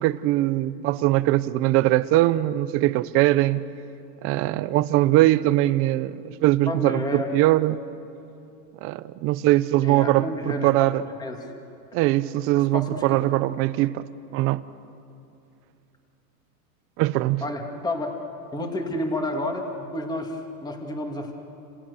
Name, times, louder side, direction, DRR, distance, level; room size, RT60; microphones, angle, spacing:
voice 1, 0.0-3.6 4.2-7.8 8.8-11.0 11.9-14.6 17.0-17.4, right 16 dB, 30° right, 0.6 m, -21 dB
voice 2, 6.7-7.3 9.8-10.9 11.2-11.4 12.6-13.2 17.4-18.1 18.5-21.3, left 1 dB, 10° left, 2.3 m, -30 dB
30.0 x 27.5 x 7.0 m
supercardioid pair, 145°, 50 cm